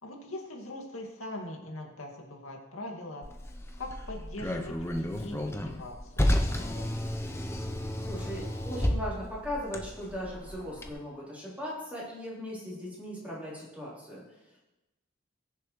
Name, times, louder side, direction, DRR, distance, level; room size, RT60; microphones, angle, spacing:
voice 1, 0.0-3.3 3.8-6.9, left 1 dB, 85° left, 0 dB, 2.1 m, -42 dB
Car, 3.2-10.9, left 1 dB, 10° left, 0.6 m, -32 dB
voice 2, 8.0-14.2, equal, 5° right, -8 dB, 3.6 m, -38 dB
19.5 x 6.9 x 3.1 m, 1.0 s
head